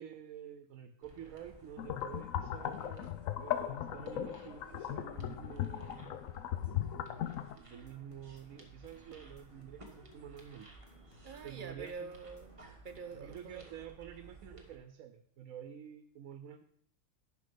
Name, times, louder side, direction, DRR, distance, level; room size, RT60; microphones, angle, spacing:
voice 1, 0.0-6.2 7.5-10.7 11.4-12.1 13.2-16.6, right 9 dB, 75° right, 8 dB, 1.0 m, -49 dB
sound 1, 1.0-14.8, right 3 dB, 25° right, 1.3 m, -57 dB
sound 2, 1.8-7.5, left 11 dB, 80° left, 1.0 m, -38 dB
sound 3, 7.7-13.4, right 1 dB, 40° left, 1.7 m, -60 dB
voice 2, 11.2-13.7, right 5 dB, 45° right, 7 dB, 0.8 m, -46 dB
10.5 x 5.4 x 5.0 m, 0.67 s
omnidirectional pair, 1.4 m